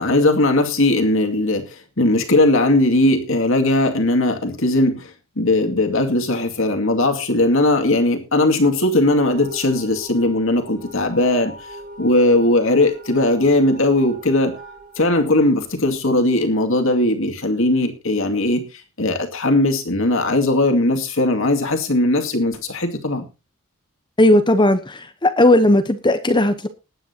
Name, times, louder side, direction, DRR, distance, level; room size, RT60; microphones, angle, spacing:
voice 1, 0.0-11.5 12.0-14.5 15.0-18.6 19.0-23.2, left 2 dB, 65° left, 5 dB, 2.4 m, -18 dB
sound 1, 9.0-15.9, right 2 dB, 40° right, 4.0 m, -40 dB
voice 2, 24.2-26.7, left 1 dB, 20° left, 9 dB, 0.9 m, -16 dB
20.0 x 9.1 x 2.9 m, 0.30 s
head